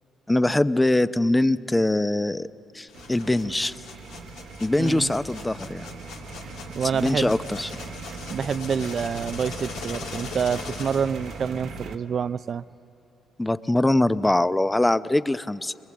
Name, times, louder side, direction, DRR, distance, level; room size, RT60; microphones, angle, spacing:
voice 1, 0.3-2.5 2.7-3.8 4.6-5.9 6.9-7.8 13.4-15.8, left 1 dB, 15° left, 13 dB, 0.7 m, -23 dB
sound 1, 2.9-11.6, left 5 dB, 85° left, 2.5 m, -41 dB
sound 2, 2.9-12.0, right 3 dB, 70° right, 1.3 m, -39 dB
voice 2, 4.8-5.1 6.7-7.3 8.3-12.6, right 7 dB, 55° right, 17 dB, 0.5 m, -27 dB
22.5 x 22.0 x 7.6 m, 2.9 s
supercardioid pair, 60°, 0 cm